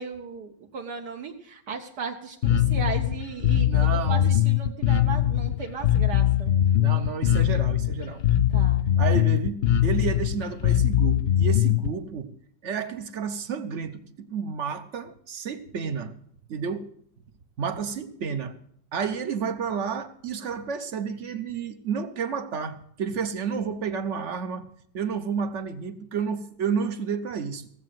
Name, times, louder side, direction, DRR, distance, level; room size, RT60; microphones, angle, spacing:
voice 1, 0.0-6.5 8.5-8.9, right 5 dB, 65° right, 3 dB, 1.6 m, -36 dB
Bass guitar, 2.4-11.9, left 11 dB, 65° left, 0.6 m, -22 dB
voice 2, 3.7-4.4 6.8-8.2 9.0-12.3 12.6-16.1 16.5-16.9 17.6-18.6 18.9-24.7 24.9-27.7, right 6 dB, 50° right, 11 dB, 1.0 m, -31 dB
17.0 x 7.6 x 7.6 m, 0.67 s
omnidirectional pair, 1.9 m